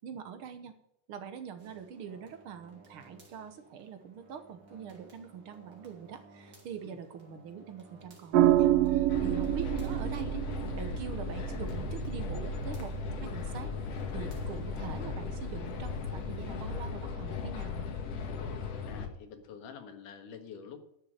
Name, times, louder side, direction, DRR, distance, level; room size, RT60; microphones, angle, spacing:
voice 1, 0.0-0.7 1.1-10.4 10.7-12.9 13.2-13.7 14.1-18.0, right 7 dB, 60° right, 8 dB, 1.4 m, -43 dB
sound 1, 1.6-15.0, right 2 dB, 30° right, 3.0 m, -58 dB
sound 2, 8.3-16.9, right 13 dB, 80° right, 1.4 m, -31 dB
sound 3, 9.1-19.1, left 6 dB, 55° left, 2.2 m, -37 dB
voice 2, 18.9-20.8, left 6 dB, 80° left, 6 dB, 3.1 m, -47 dB
11.0 x 7.2 x 8.9 m, 0.76 s
omnidirectional pair, 3.6 m